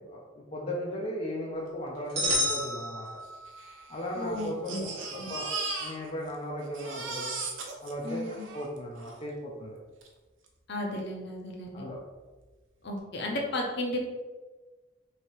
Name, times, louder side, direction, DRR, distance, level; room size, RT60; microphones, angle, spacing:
voice 1, 0.0-3.2 3.9-5.5 5.8-7.3 7.8-8.2 8.5-9.8 11.7-12.0, equal, 30° left, -3 dB, 0.5 m, -37 dB
sound 1, 2.2-3.7, equal, 35° right, 1.4 m, -30 dB
Crying sobbing, 2.3-2.4 2.6-2.7 3.5-6.4 6.6-9.2 10.0-10.1 10.5-10.6, right 3 dB, 75° right, 0.7 m, -38 dB
voice 2, 4.2-4.8 5.1-5.3 8.0-8.4 10.7-11.9 12.8-14.0, left 1 dB, 60° left, 0 dB, 0.8 m, -34 dB
3.2 x 2.9 x 4.3 m, 1.3 s
head